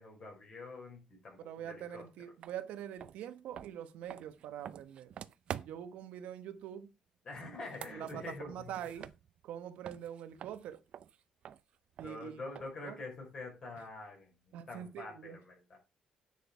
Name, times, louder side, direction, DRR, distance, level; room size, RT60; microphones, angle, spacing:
voice 1, 0.0-2.1 7.2-8.7 12.0-15.8, left 3 dB, 35° left, 5.6 m, -46 dB
voice 2, 1.4-5.1 5.6-6.9 7.5-7.6 7.9-9.1 9.4-10.8 12.0-12.4 12.8-13.0 14.5-15.4, right 10 dB, 90° right, 1.2 m, -44 dB
sound 1, 2.4-2.6 3.0-6.0 7.5-9.6 9.8-12.9, right 9 dB, 50° right, 0.5 m, -48 dB
9.6 x 6.2 x 4.7 m
cardioid pair, 160°, 2 cm